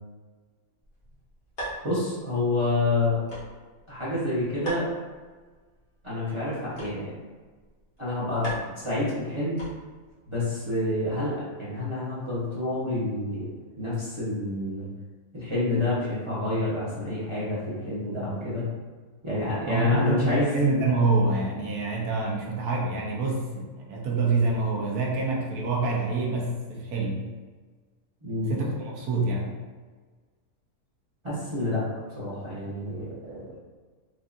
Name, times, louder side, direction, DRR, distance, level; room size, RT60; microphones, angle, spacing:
sound 1, 0.8-10.1, right 1 dB, 35° left, 1.4 m, -42 dB
voice 1, 1.8-3.2 3.9-4.9 6.0-7.1 8.0-9.6 10.3-13.5 13.8-14.9 15.3-18.7 19.2-20.5 28.2-28.5 31.2-31.8 32.1-33.5, left 2 dB, 25° right, -10 dB, 0.8 m, -28 dB
voice 2, 19.7-27.2 28.5-29.5, right 3 dB, 80° right, -1 dB, 1.3 m, -26 dB
4.5 x 2.7 x 2.5 m, 1.4 s
omnidirectional pair, 1.6 m